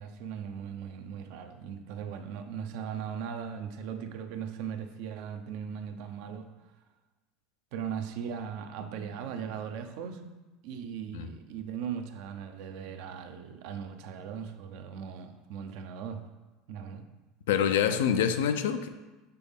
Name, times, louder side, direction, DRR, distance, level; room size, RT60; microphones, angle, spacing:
voice 1, 0.0-6.5 7.7-10.4 10.6-16.2 16.7-17.0, right 7 dB, 70° right, 0.6 m, -38 dB
voice 2, 17.5-18.9, left 8 dB, 85° left, 0.4 m, -26 dB
6.9 x 4.0 x 3.5 m
supercardioid pair, 95°, 0 cm